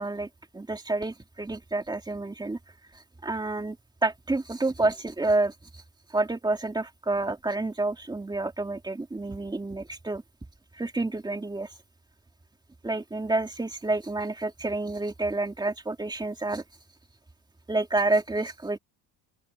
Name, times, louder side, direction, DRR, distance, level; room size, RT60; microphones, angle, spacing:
voice 1, 0.0-2.6 2.9-3.8 4.0-5.8 6.1-10.2 10.8-11.7 12.8-16.6 17.7-18.8, right 2 dB, 10° right, 2.5 m, -29 dB
open air
cardioid pair, 165°, 42 cm